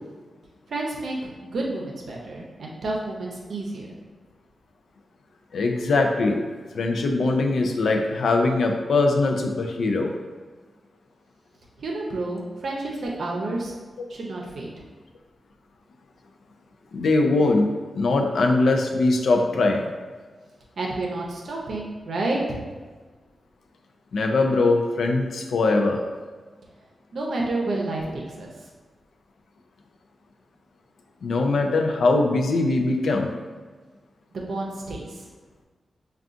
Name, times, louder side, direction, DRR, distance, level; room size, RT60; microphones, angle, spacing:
voice 1, 0.7-3.9 11.8-13.7 14.1-14.7 20.8-22.6 27.1-28.5 34.3-35.2, right 2 dB, 70° right, -2 dB, 0.6 m, -30 dB
voice 2, 5.5-6.4 6.7-10.1 14.0-14.1 16.9-17.7 18.0-19.8 24.1-26.0 31.2-33.3, left 3 dB, 80° left, 3 dB, 0.3 m, -21 dB
3.6 x 2.3 x 2.5 m, 1.4 s
wide cardioid pair, 105°, 0 cm